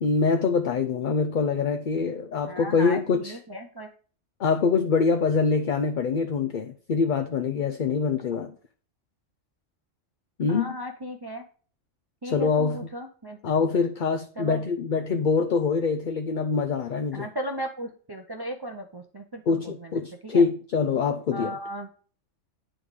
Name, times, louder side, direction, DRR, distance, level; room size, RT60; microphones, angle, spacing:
voice 1, 0.0-3.4 4.4-8.5 10.4-10.7 12.2-12.8 13.4-17.3 19.5-21.5, left 5 dB, 50° left, 0.7 m, -24 dB
voice 2, 2.4-3.9 10.5-11.4 12.2-13.4 14.4-14.6 17.1-20.4 21.3-21.9, right 1 dB, 25° right, 0.6 m, -36 dB
9.6 x 3.8 x 4.9 m
omnidirectional pair, 1.3 m